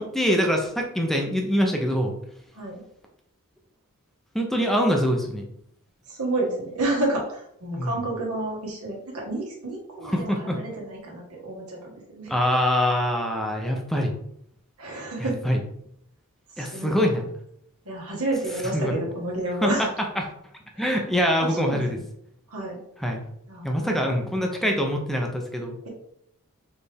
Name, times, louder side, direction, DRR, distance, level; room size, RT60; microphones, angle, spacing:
voice 1, 0.0-2.1 4.3-5.4 7.7-7.9 10.0-10.6 12.3-14.1 15.2-15.6 16.6-17.3 18.7-18.9 19.6-19.7 20.2-20.3 20.8-21.9 23.0-23.2 23.6-25.8, equal, ahead, 1 dB, 0.5 m, -24 dB
voice 2, 6.1-12.3 14.8-15.4 16.6-17.1 17.8-19.9 20.7-21.0 21.4-22.0 22.5-22.8 23.5-24.0 24.6-24.8 25.8-25.9, right 2 dB, 80° right, -2 dB, 1.4 m, -30 dB
4.3 x 3.2 x 3.4 m, 0.72 s
head